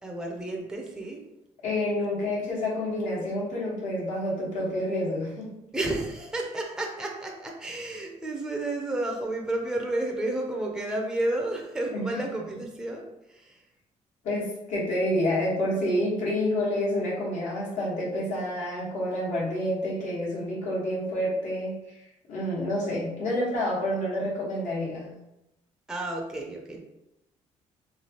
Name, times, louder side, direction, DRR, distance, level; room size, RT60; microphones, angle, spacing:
voice 1, 0.0-1.3 5.7-13.6 25.9-26.8, right 1 dB, 5° right, 0 dB, 0.5 m, -31 dB
voice 2, 1.6-5.5 11.9-12.0 14.2-21.8 22.3-25.1, left 1 dB, 75° left, -5 dB, 1.3 m, -28 dB
3.1 x 2.3 x 2.8 m, 0.89 s
cardioid pair, 120°, 13 cm